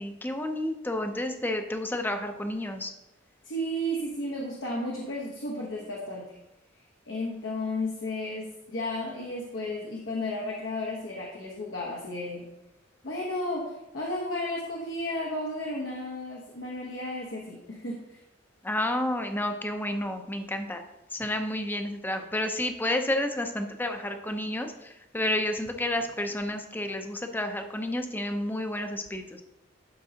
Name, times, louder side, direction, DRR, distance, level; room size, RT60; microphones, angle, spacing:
voice 1, 0.0-2.9 18.6-20.8 21.1-29.4, left 1 dB, 10° left, 6 dB, 0.6 m, -30 dB
voice 2, 3.4-6.4 7.1-12.5 13.0-18.2, left 1 dB, 70° left, -2 dB, 1.1 m, -33 dB
11.5 x 5.3 x 2.8 m, 0.93 s
head